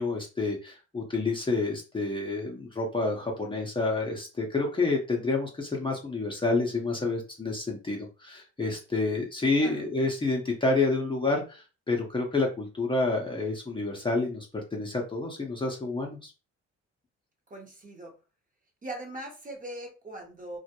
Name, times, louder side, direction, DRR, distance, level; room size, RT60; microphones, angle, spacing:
voice 1, 0.0-14.5 14.7-16.3, left 3 dB, 15° left, -1 dB, 0.6 m, -29 dB
voice 2, 17.5-18.2 18.8-20.6, right 1 dB, 25° right, 1 dB, 0.8 m, -40 dB
2.2 x 2.0 x 2.8 m, 0.32 s
cardioid pair, 90°, 30 cm